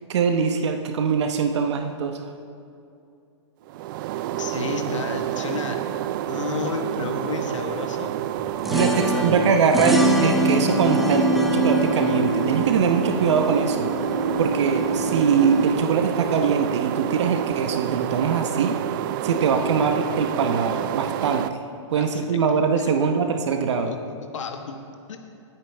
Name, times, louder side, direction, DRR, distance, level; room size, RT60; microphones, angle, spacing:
voice 1, 0.1-2.2 8.7-13.9 14.4-18.8 19.2-21.6 21.9-23.9, right 6 dB, 65° right, 5 dB, 1.0 m, -22 dB
sound 1, 3.6-21.5, right 12 dB, 45° right, 0.4 m, -29 dB
voice 2, 4.4-5.8 6.3-8.1 8.8-9.2 21.9-22.3 22.8-22.9 23.9-24.0 24.3-24.8 25.1-25.2, left 5 dB, 80° left, 4 dB, 1.3 m, -32 dB
sound 2, 8.4-15.7, right 2 dB, ahead, 1.1 m, -24 dB
20.5 x 8.9 x 3.5 m, 2.6 s
hypercardioid pair, 135°, 16 cm